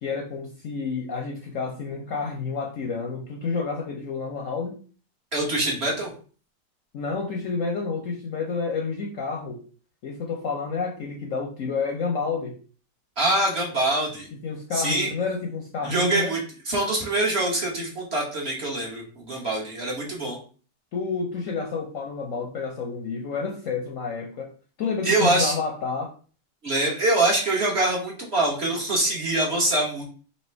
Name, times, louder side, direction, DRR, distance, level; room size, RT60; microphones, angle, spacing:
voice 1, 0.0-4.8 6.9-9.6 10.0-12.6 14.4-16.3 20.9-24.5 24.8-26.1, left 4 dB, 65° left, 1 dB, 0.8 m, -29 dB
voice 2, 5.3-6.1 13.2-14.3 14.7-15.1 15.8-20.4 25.0-25.5 26.6-30.0, right 2 dB, 45° right, -2 dB, 1.1 m, -24 dB
3.3 x 2.8 x 4.3 m, 0.39 s
omnidirectional pair, 1.8 m